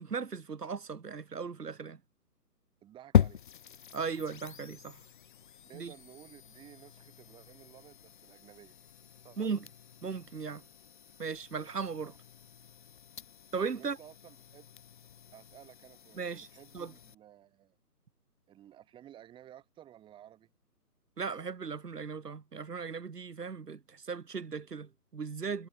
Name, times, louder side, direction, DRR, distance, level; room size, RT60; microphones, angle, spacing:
voice 1, 0.0-2.0 3.9-5.0 5.8-5.9 9.4-9.6 10.0-10.6 11.2-12.1 13.5-14.0 16.2-16.5 16.7-16.9 21.2-25.7, right 5 dB, 80° right, 2.7 m, -37 dB
voice 2, 2.8-3.4 5.7-8.7 9.2-9.5 12.0-12.2 13.7-14.7 15.3-17.8 18.5-20.5, right 11 dB, 10° right, 7.3 m, -55 dB
sound 1, 3.1-17.1, left 9 dB, 30° left, 1.5 m, -38 dB
hypercardioid pair, 160°, 47 cm